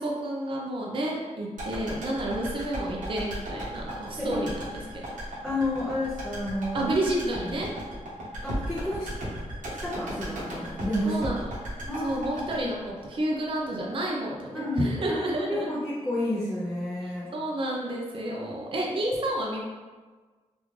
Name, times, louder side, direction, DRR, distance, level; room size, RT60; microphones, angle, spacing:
voice 1, 0.0-5.2 6.7-7.7 11.0-11.5 12.0-15.7 17.0-19.6, right 1 dB, 45° right, -2 dB, 0.5 m, -30 dB
sound 1, 1.6-13.7 14.0-14.1, right 1 dB, 85° right, 1.1 m, -36 dB
voice 2, 5.4-6.9 7.2-7.6 8.4-9.1 9.8-11.2 11.9-12.7 14.5-15.2 15.5-17.3, left 1 dB, ahead, -9 dB, 0.6 m, -31 dB
3.5 x 2.4 x 3.1 m, 1.4 s
wide cardioid pair, 155°, 13 cm